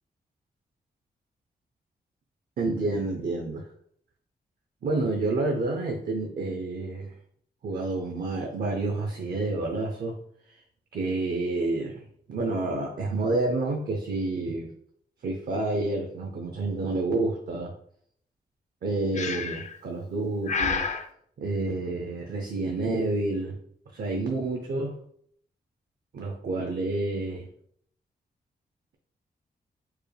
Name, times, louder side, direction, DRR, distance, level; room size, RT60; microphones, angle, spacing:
voice 1, 2.6-3.7 4.8-7.1 7.6-10.2 10.5-10.6 10.9-12.0 12.3-14.7 15.2-17.7 18.8-20.9 21.4-23.6 23.9-24.9 26.1-27.5, right 2 dB, 65° right, 2 dB, 0.6 m, -29 dB
Breathing, 19.1-19.8 20.5-21.1, left 5 dB, 45° left, 0.5 m, -29 dB
4.6 x 2.1 x 3.3 m, 0.64 s
cardioid pair, 60°, 17 cm